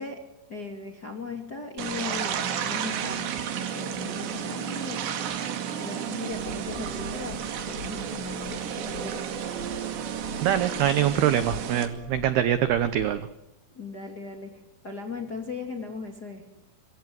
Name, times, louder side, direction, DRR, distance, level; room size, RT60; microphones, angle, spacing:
voice 1, 0.0-5.5 5.8-9.4 13.7-16.6, left 4 dB, 30° left, 3 dB, 1.9 m, -38 dB
sound 1, 1.8-11.9, right 8 dB, 60° right, 4.1 m, -32 dB
Wind instrument woodwind instrument, 4.0-12.6, right 7 dB, 40° right, 6.4 m, -45 dB
sound 2, 6.3-13.3, left 4 dB, 70° left, 5.2 m, -44 dB
voice 2, 10.4-13.3, right 11 dB, 80° right, 12 dB, 2.3 m, -24 dB
26.5 x 24.0 x 7.8 m, 0.85 s
omnidirectional pair, 6.0 m